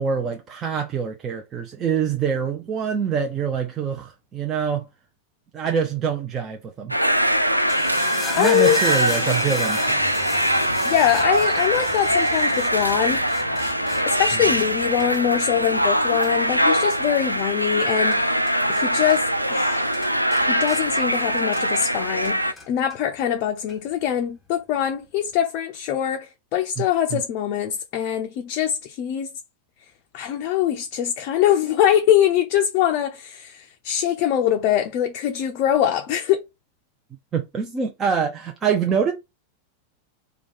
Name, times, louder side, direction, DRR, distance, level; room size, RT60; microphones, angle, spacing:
voice 1, 0.0-4.9 5.5-7.0 8.4-10.0 26.8-26.9 27.1-27.2 37.3-39.1, right 6 dB, 25° right, 0.6 m, -25 dB
sound 1, 6.9-22.5, equal, 90° right, 0.3 m, -22 dB
sound 2, 7.5-18.8 19.1-19.7 19.9-21.9 22.2-23.0 23.7-23.8, left 2 dB, 10° left, 0.9 m, -36 dB
voice 2, 8.4-8.8 10.8-13.3 14.1-20.0 20.4-29.3 30.1-36.4, left 10 dB, 40° left, 0.5 m, -23 dB
3.5 x 2.2 x 3.6 m
figure-of-eight pair, 90°, 0 cm